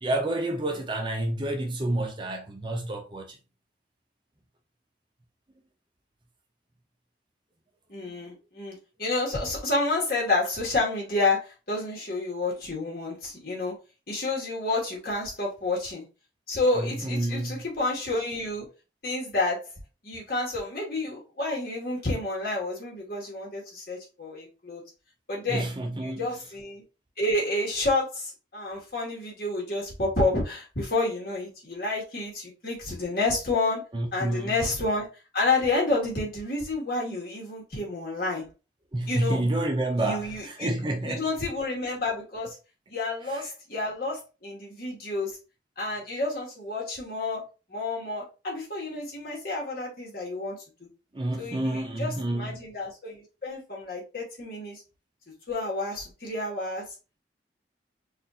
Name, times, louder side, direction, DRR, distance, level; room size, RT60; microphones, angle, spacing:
voice 1, 0.0-3.3 16.8-17.6 25.5-26.2 33.9-34.6 38.9-41.2 43.3-43.5 51.1-52.6, right 1 dB, 25° right, 0.5 m, -29 dB
voice 2, 7.9-13.7 14.1-16.0 16.5-18.7 19.0-19.6 20.0-24.8 25.3-25.7 26.0-26.8 27.2-33.8 34.1-35.1 35.3-38.5 39.1-39.4 40.0-40.7 41.1-42.6 42.9-45.4 45.8-47.4 47.7-50.6 51.4-54.8 55.5-56.8, left 2 dB, 55° left, 1.7 m, -29 dB
4.0 x 2.6 x 2.7 m
head